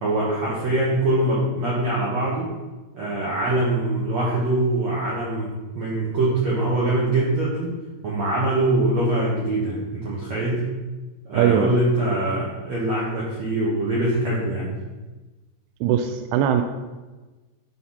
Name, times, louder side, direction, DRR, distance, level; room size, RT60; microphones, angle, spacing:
voice 1, 0.0-2.5 2.9-7.7 8.0-10.6 11.3-14.7, right 1 dB, 60° right, -6 dB, 1.8 m, -23 dB
voice 2, 11.3-11.7 15.8-16.6, right 9 dB, 85° right, 6 dB, 3.1 m, -20 dB
13.0 x 4.7 x 5.7 m, 1.2 s
omnidirectional pair, 5.5 m